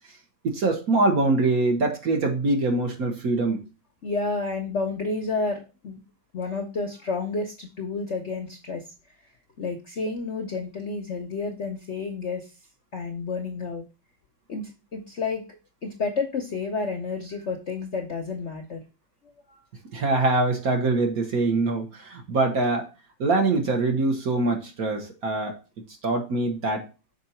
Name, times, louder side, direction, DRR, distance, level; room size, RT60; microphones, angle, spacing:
voice 1, 0.4-3.6 19.9-22.9 23.2-25.6 26.0-26.9, right 2 dB, 55° right, 3 dB, 1.4 m, -24 dB
voice 2, 4.0-6.0 6.3-8.8 9.6-12.5 12.9-13.8 14.5-15.5 15.8-18.8 19.5-19.6, left 4 dB, 50° left, 3 dB, 0.8 m, -30 dB
6.6 x 4.3 x 4.3 m, 0.31 s
omnidirectional pair, 2.1 m